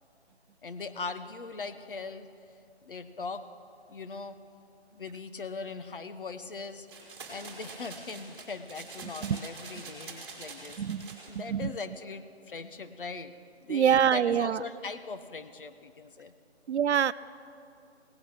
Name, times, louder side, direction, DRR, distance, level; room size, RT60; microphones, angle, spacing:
voice 1, 0.6-2.3 2.8-3.5 3.9-4.4 4.9-6.9 7.3-10.8 11.3-13.3 13.6-16.3, left 4 dB, 50° left, 10 dB, 0.8 m, -40 dB
sound 1, 6.9-11.3, right 4 dB, 20° right, 2.2 m, -45 dB
voice 2, 10.8-11.1 11.5-11.7 13.7-14.6 16.7-17.1, right 8 dB, 80° right, 18 dB, 0.5 m, -25 dB
17.0 x 12.0 x 5.8 m, 2.5 s
figure-of-eight pair, 165°, 33 cm